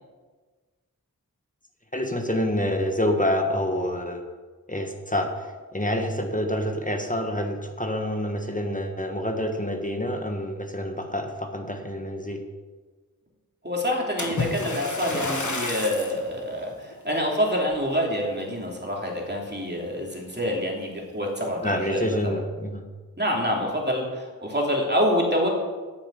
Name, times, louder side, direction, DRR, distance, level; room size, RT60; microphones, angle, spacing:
voice 1, 1.9-4.2 4.7-12.4 21.6-22.8, left 1 dB, 20° left, 4 dB, 1.3 m, -27 dB
voice 2, 13.6-22.0 23.2-25.5, equal, 30° right, -2 dB, 2.9 m, -26 dB
Splash splatter, 14.2-16.2 16.9-17.1 17.7-17.8, left 3 dB, 55° left, 1.5 m, -30 dB
9.6 x 7.1 x 8.2 m, 1.4 s
wide cardioid pair, 45°, 36 cm